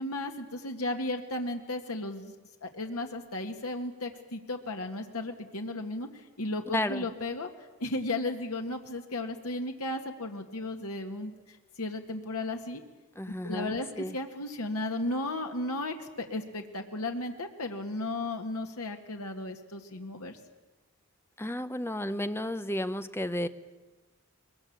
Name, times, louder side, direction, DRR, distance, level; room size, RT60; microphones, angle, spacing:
voice 1, 0.0-2.3 2.6-7.5 7.8-12.8 13.4-20.4, left 2 dB, 85° left, 4 dB, 1.8 m, -35 dB
voice 2, 6.7-7.1 13.1-14.2 21.4-23.5, left 1 dB, 10° left, 11 dB, 0.8 m, -32 dB
22.0 x 21.0 x 8.6 m, 1.2 s
head